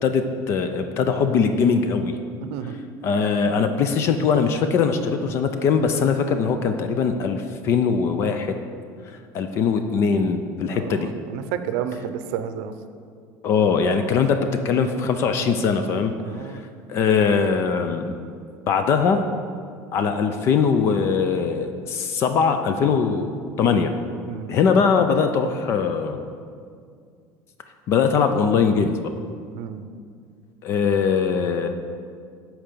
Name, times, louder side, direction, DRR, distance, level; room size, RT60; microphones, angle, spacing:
voice 1, 0.0-2.1 3.0-8.6 9.3-11.1 13.4-16.1 16.5-16.6 16.9-18.0 18.7-19.3 19.9-23.9 24.5-26.2 27.9-29.1 30.6-31.7, left 5 dB, 35° left, 8 dB, 0.4 m, -21 dB
voice 2, 2.4-2.8 10.7-12.7 16.2-16.6 24.3-24.6 29.5-29.9, right 9 dB, 80° right, 10 dB, 0.6 m, -31 dB
9.0 x 4.6 x 6.6 m, 2.2 s
cardioid pair, 180°, 7 cm